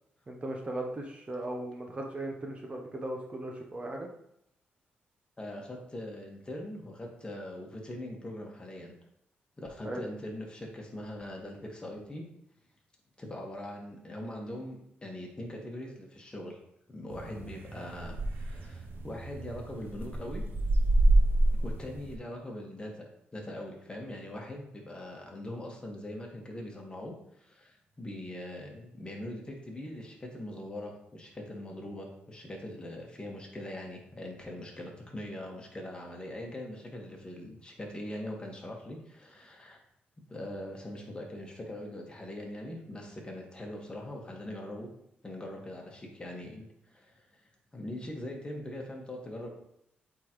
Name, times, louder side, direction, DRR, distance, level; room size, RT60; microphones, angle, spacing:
voice 1, 0.3-4.1 9.8-10.0, right 1 dB, 30° right, 1 dB, 0.9 m, -37 dB
voice 2, 5.4-8.9 9.6-12.2 13.2-16.6 16.9-20.4 21.6-23.1 23.3-39.8 40.3-44.9 45.2-49.5, left 1 dB, 25° left, 0 dB, 1.7 m, -42 dB
sound 1, 17.1-22.2, right 1 dB, 60° right, 0.8 m, -28 dB
8.2 x 3.9 x 3.1 m, 0.76 s
cardioid pair, 80°, 4 cm